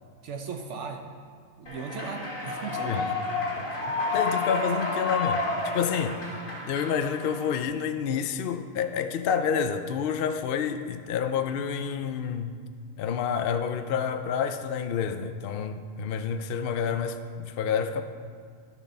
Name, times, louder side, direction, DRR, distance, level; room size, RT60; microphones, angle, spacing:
voice 1, 0.2-1.0 1.6-3.2, right 5 dB, 70° right, 4 dB, 1.1 m, -37 dB
Human voice / Clapping / Cheering, 1.7-7.6, left 3 dB, 45° left, 1.9 m, -30 dB
voice 2, 2.8-3.1 3.6-6.3 6.7-12.5 13.0-18.0, left 7 dB, 60° left, 9 dB, 0.7 m, -29 dB
12.0 x 7.1 x 5.4 m, 2.1 s
omnidirectional pair, 1.3 m